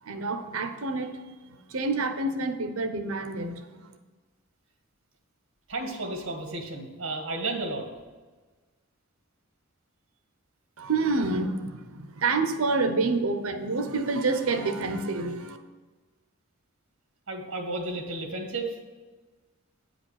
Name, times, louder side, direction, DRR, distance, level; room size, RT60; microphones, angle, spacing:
voice 1, 0.0-3.9 10.8-15.6, right 3 dB, 80° right, 8 dB, 0.8 m, -28 dB
voice 2, 5.7-7.8 17.3-18.8, right 2 dB, 65° right, 3 dB, 1.7 m, -32 dB
9.2 x 5.1 x 6.4 m, 1.3 s
head